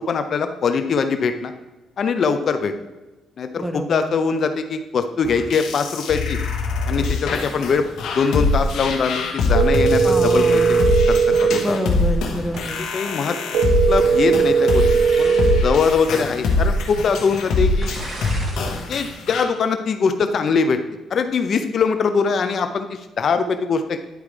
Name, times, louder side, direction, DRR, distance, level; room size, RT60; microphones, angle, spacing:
voice 1, 0.1-1.5 2.0-2.7 3.4-6.4 6.9-7.8 8.1-10.8 11.1-11.8 12.9-13.4 13.9-14.8 15.2-17.9 18.9-20.8 21.1-24.0, left 5 dB, 55° left, 8 dB, 0.5 m, -22 dB
voice 2, 3.6-4.1 10.0-10.8 11.6-12.9, right 1 dB, ahead, 6 dB, 0.9 m, -27 dB
sound 1, 5.2-19.4, left 3 dB, 80° left, 1.3 m, -23 dB
sound 2, 9.5-11.6 13.5-15.6, right 6 dB, 85° right, 0.9 m, -17 dB
sound 3, 12.5-13.1 15.0-15.6 16.5-16.6 17.8-18.9 19.3-19.6, right 1 dB, 30° right, 2.1 m, -36 dB
10.5 x 4.8 x 3.2 m, 1.1 s
cardioid pair, 90°, 0 cm